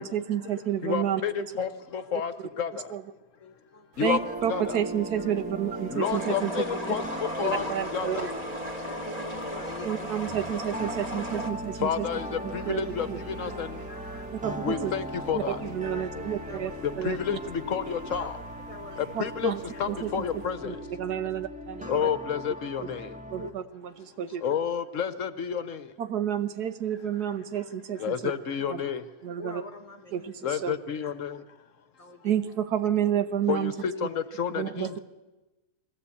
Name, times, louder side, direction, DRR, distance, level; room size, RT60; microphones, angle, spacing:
voice 1, 0.0-1.2 2.9-3.0 4.0-6.5 7.4-8.3 9.8-12.1 12.7-12.8 13.1-13.2 14.4-14.9 15.3-16.7 17.0-17.4 19.1-19.6 19.9-20.2 20.6-22.1 23.3-24.4 26.0-28.3 28.7-28.8 29.2-29.6 30.1-30.7 32.2-33.7 34.6-34.9, right 10 dB, 80° right, 11 dB, 1.6 m, -30 dB
voice 2, 0.8-2.9 4.0-4.2 4.5-4.8 5.9-7.0 7.4-7.7 7.9-8.3 11.8-13.8 14.6-15.6 16.8-18.4 19.0-20.8 21.9-23.1 24.4-25.9 28.0-29.0 30.4-31.4 33.5-35.0, left 7 dB, 60° left, 13 dB, 1.1 m, -30 dB
voice 3, 3.4-4.1 4.4-4.6 5.2-5.3 6.5-7.0 7.8-8.0 8.8-10.1 12.4-12.7 13.5-14.8 15.8-16.7 18.2-18.3 18.7-19.0 19.8-20.0 21.8-22.4 23.3-23.5 24.2-24.6 28.6-28.7 29.4-30.3 31.0-31.1 32.0-32.4 33.9-34.0, left 2 dB, 25° left, 8 dB, 1.1 m, -44 dB
sound 1, 3.9-20.5, right 3 dB, 50° right, 1.5 m, -50 dB
sound 2, 4.1-23.5, equal, 5° right, 0.7 m, -39 dB
sound 3, 6.0-11.5, equal, 25° right, 2.5 m, -36 dB
20.5 x 15.5 x 8.4 m, 1.1 s
omnidirectional pair, 1.7 m